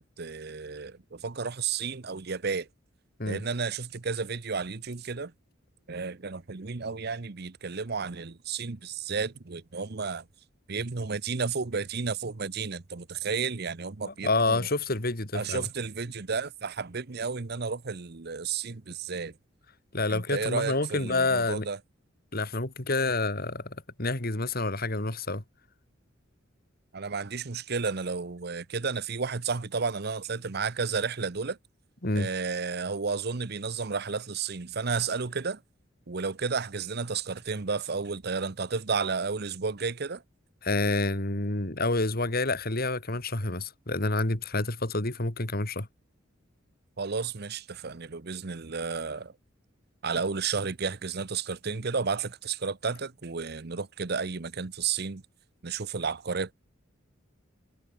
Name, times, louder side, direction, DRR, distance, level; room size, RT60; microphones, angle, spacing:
voice 1, 0.0-2.7 3.3-5.3 5.9-10.2 10.7-14.7 15.3-19.3 20.1-21.8 26.9-31.6 32.1-35.6 36.1-40.2 47.0-49.3 50.0-55.2 55.6-56.5, right 5 dB, 55° right, 0.9 m, -32 dB
voice 2, 14.1-15.6 19.9-21.7 22.3-25.4 32.0-32.3 40.6-45.9, left 2 dB, 50° left, 2.9 m, -28 dB
head